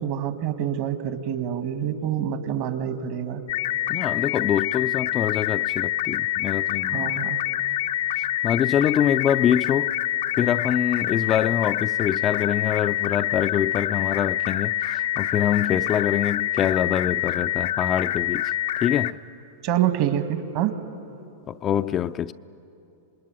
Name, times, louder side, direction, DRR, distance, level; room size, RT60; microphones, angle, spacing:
voice 1, 0.0-3.4 6.9-7.4 19.6-20.7, right 10 dB, 55° right, 2.0 m, -26 dB
sound 1, 3.5-19.1, left 13 dB, 70° left, 0.7 m, -26 dB
voice 2, 3.9-7.3 8.2-10.0 10.3-18.5 18.8-19.2 21.5-22.3, left 10 dB, 30° left, 0.5 m, -25 dB
26.0 x 21.0 x 9.8 m
hypercardioid pair, 100°, 0 cm